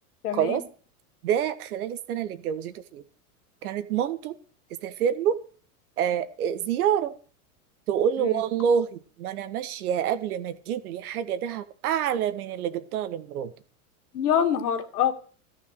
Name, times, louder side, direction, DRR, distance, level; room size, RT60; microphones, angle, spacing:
voice 1, 0.2-0.6 8.2-8.4 14.1-15.1, left 9 dB, 80° left, 8 dB, 2.4 m, -25 dB
voice 2, 1.2-3.0 3.6-4.3 4.8-5.4 6.0-7.2 7.9-13.5, right 8 dB, 75° right, 13 dB, 1.6 m, -27 dB
14.5 x 9.5 x 6.8 m, 0.42 s
hypercardioid pair, 105°, 45 cm